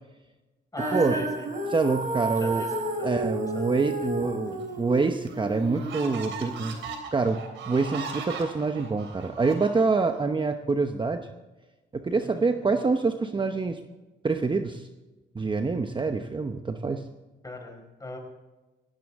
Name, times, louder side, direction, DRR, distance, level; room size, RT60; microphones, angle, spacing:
voice 1, 0.7-1.5 2.4-3.1 3.5-3.7 4.0-4.1 12.2-12.4 17.4-18.2, left 2 dB, 15° left, 2 dB, 5.1 m, -39 dB
Female singing, 0.8-7.0, right 2 dB, 40° right, 4.1 m, -32 dB
voice 2, 1.7-2.6 3.0-6.8 7.1-7.4 7.6-11.3 11.9-13.8 14.2-14.9 15.3-17.0, right 4 dB, 25° right, 6 dB, 0.9 m, -26 dB
sound 1, 4.6-4.7 5.3-10.2, right 5 dB, 75° right, 3.2 m, -39 dB
18.0 x 17.0 x 3.6 m, 1.1 s
cardioid pair, 90°, 20 cm